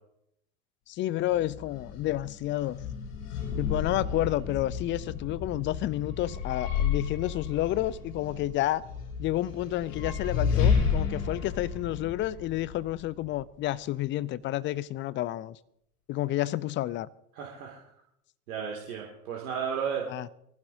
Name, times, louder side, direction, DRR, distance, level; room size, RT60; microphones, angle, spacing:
voice 1, 0.9-2.8 3.6-8.8 9.2-15.6 16.1-17.1 20.1-20.3, left 14 dB, 25° left, 0.5 m, -30 dB
sound 1, 1.3-13.4, left 6 dB, 60° left, 6.0 m, -32 dB
voice 2, 17.3-17.8 18.5-20.1, right 7 dB, 65° right, 2.6 m, -33 dB
23.5 x 15.0 x 2.7 m
figure-of-eight pair, 80°, 45 cm